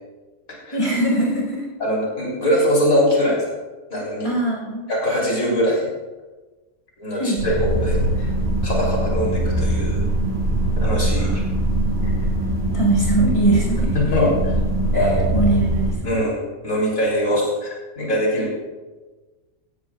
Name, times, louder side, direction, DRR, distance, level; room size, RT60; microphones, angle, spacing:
voice 1, 0.7-1.6 4.2-4.8 7.1-7.4 11.2-11.4 12.7-14.3 14.9-16.2, right 2 dB, 20° left, -3 dB, 5.0 m, -22 dB
voice 2, 1.8-3.5 3.9-4.3 4.9-5.9 7.0-8.3 8.6-10.1 10.8-11.4 12.0-12.1 13.9-14.3 14.9-15.5 16.1-18.5, equal, 75° left, -3 dB, 3.7 m, -22 dB
sound 1, 7.4-15.9, right 1 dB, 45° right, 4.5 m, -22 dB
17.0 x 16.5 x 2.4 m, 1.2 s
omnidirectional pair, 1.5 m